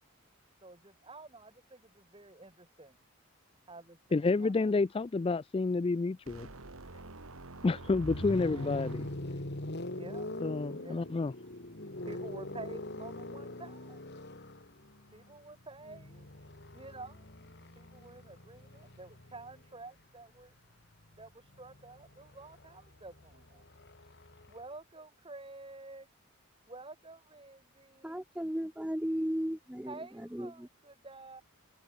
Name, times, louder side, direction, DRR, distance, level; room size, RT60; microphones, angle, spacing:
voice 1, 0.6-3.0 3.7-4.8 8.0-8.8 9.9-10.4 10.7-11.2 12.0-14.0 15.1-16.3 16.7-17.3 17.8-20.5 21.2-23.6 24.5-26.1 26.7-28.2 29.9-31.4, right 2 dB, 25° right, 2.4 m, -50 dB
voice 2, 4.1-6.5 7.6-9.1 10.4-11.3, left 3 dB, 25° left, 0.3 m, -29 dB
sound 1, 6.3-9.5, right 2 dB, 75° right, 2.0 m, -48 dB
sound 2, 7.8-19.8 21.0-24.6, left 1 dB, 50° left, 2.3 m, -43 dB
voice 3, 28.0-30.0 30.3-30.7, equal, 5° right, 0.7 m, -35 dB
head